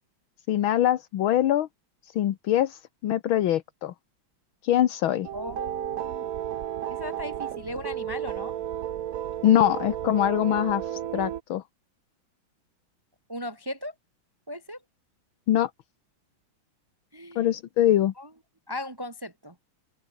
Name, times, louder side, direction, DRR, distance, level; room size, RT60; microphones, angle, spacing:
voice 1, 0.5-1.7 2.1-3.9 4.6-5.3 9.4-11.6 15.5-15.7 17.4-18.1, left 12 dB, 75° left, 1.8 m, -23 dB
sound 1, 5.2-11.4, right 11 dB, 60° right, 0.9 m, -33 dB
voice 2, 5.3-6.3 6.9-8.5 13.3-13.9 14.5-14.8 17.1-17.4 18.2-18.3 18.7-19.5, left 1 dB, 40° right, 0.3 m, -37 dB
open air
omnidirectional pair, 2.3 m